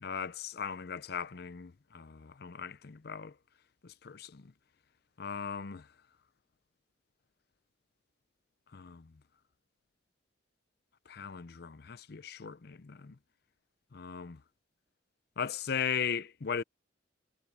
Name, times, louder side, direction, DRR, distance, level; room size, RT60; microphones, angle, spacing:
voice 1, 0.0-3.3 3.8-4.5 5.2-5.9 8.7-9.1 11.1-13.2 13.9-14.4 15.4-16.6, left 7 dB, 55° left, 0.6 m, -38 dB
head